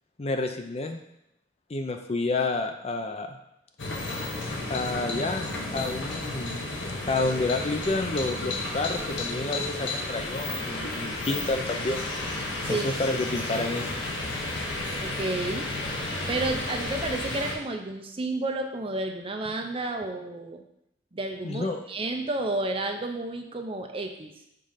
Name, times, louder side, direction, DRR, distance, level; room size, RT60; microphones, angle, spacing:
voice 1, 0.2-1.0 1.7-3.4 4.7-6.6 7.1-12.0 12.7-13.9 21.4-21.8, left 3 dB, 35° left, 6 dB, 0.5 m, -29 dB
sound 1, 3.8-17.6, left 2 dB, 80° left, 1.2 m, -32 dB
voice 2, 15.0-15.7 16.3-20.6 21.1-24.3, right 2 dB, 30° right, 4 dB, 0.6 m, -31 dB
5.2 x 3.8 x 5.6 m, 0.81 s
head